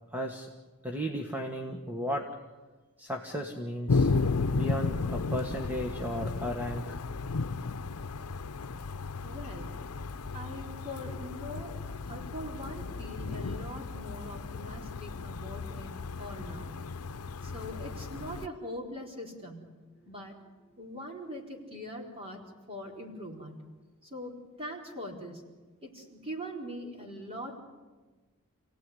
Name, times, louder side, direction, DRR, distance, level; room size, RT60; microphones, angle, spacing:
voice 1, 0.1-0.5 0.8-2.3 3.0-4.1 4.5-7.0, equal, 10° right, 2 dB, 1.5 m, -35 dB
sound 1, 3.9-18.5, left 3 dB, 85° left, 0.7 m, -34 dB
voice 2, 9.2-9.8 10.3-11.8 12.1-15.9 16.2-16.9 17.4-20.4 20.8-23.7 24.0-25.5 25.8-27.6, equal, 25° right, 0 dB, 4.4 m, -42 dB
28.5 x 17.5 x 9.9 m, 1.3 s
head